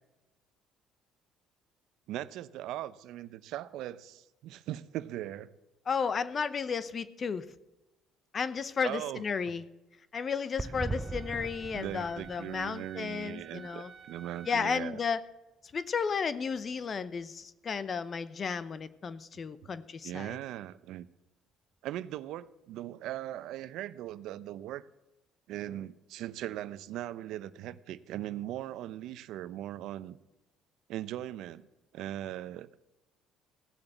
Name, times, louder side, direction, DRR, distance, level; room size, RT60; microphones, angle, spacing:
voice 1, 2.1-5.5 8.8-9.2 11.7-15.0 19.6-19.7 20.0-21.1 21.8-24.9 25.5-30.2 30.9-31.6 31.9-32.7, right 13 dB, 75° right, 15 dB, 0.6 m, -39 dB
voice 2, 5.9-7.5 8.3-9.6 10.1-13.9 14.5-15.2 15.7-20.4, left 6 dB, 40° left, 16 dB, 0.8 m, -33 dB
sound 1, 10.6-14.3 14.6-14.7 14.9-15.0, right 3 dB, 20° right, 0.4 m, -40 dB
Wind instrument woodwind instrument, 10.8-14.8, right 6 dB, 40° right, 1.8 m, -52 dB
16.0 x 7.1 x 8.0 m, 1.0 s
supercardioid pair, 85°, 0 cm